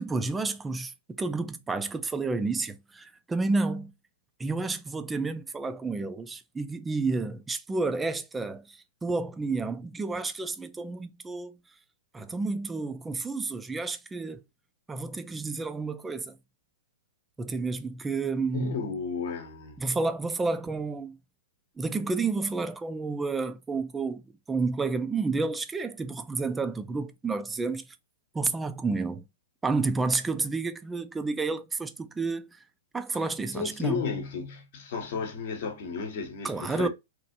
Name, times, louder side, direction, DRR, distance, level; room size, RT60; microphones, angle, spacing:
voice 1, 0.0-3.9 4.4-11.6 12.1-14.4 14.9-16.3 17.4-18.8 19.8-21.2 21.8-27.8 28.3-29.2 29.6-32.6 32.9-34.0 36.4-36.9, right 3 dB, 10° right, 0.4 m, -30 dB
voice 2, 18.5-19.8 33.5-36.9, left 5 dB, 50° left, 0.9 m, -33 dB
3.0 x 2.5 x 2.6 m
figure-of-eight pair, 105°, 0 cm